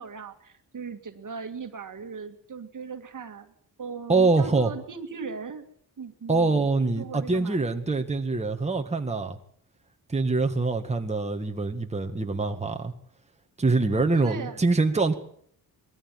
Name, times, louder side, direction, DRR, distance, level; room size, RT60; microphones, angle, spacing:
voice 1, 0.0-3.5 3.8-5.7 6.0-7.6 14.2-14.6, right 5 dB, 50° right, 7 dB, 2.1 m, -38 dB
voice 2, 4.1-4.7 6.3-9.4 10.1-12.9 13.6-15.1, right 3 dB, 15° right, 4 dB, 2.0 m, -24 dB
21.0 x 14.5 x 9.2 m, 0.64 s
cardioid pair, 85°, 39 cm